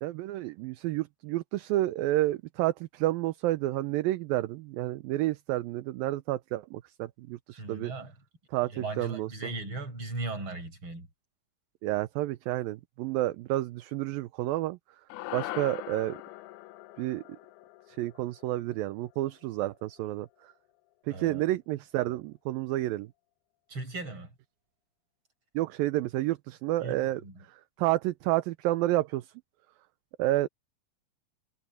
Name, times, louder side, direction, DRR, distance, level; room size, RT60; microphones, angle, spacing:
voice 1, 0.0-7.9 8.5-9.5 11.8-14.8 15.3-16.2 17.0-17.2 17.9-20.5 21.1-23.1 25.5-27.2 27.5-29.3 30.2-30.5, right 16 dB, 75° right, 2.3 m, -30 dB
voice 2, 7.5-8.2 8.6-11.1 21.1-21.5 23.7-24.3 26.8-27.4, right 2 dB, 30° right, 7.2 m, -38 dB
sound 1, 15.1-19.6, left 18 dB, 85° left, 2.6 m, -42 dB
omnidirectional pair, 4.6 m